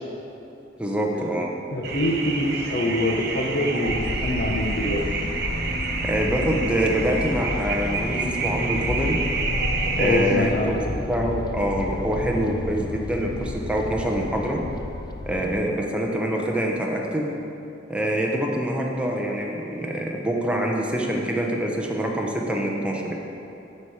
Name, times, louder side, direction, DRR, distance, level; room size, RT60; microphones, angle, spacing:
voice 1, 0.8-1.5 6.0-9.2 10.0-14.6 15.3-17.4 17.9-23.1, equal, 5° right, -1 dB, 0.7 m, -25 dB
voice 2, 1.7-5.0 10.0-10.8, left 1 dB, 50° left, -2 dB, 0.7 m, -24 dB
sound 1, 1.8-10.3, right 4 dB, 55° right, 0.7 m, -29 dB
sound 2, 3.8-15.6, left 2 dB, 20° left, 0.3 m, -31 dB
11.5 x 4.4 x 4.8 m, 2.9 s
head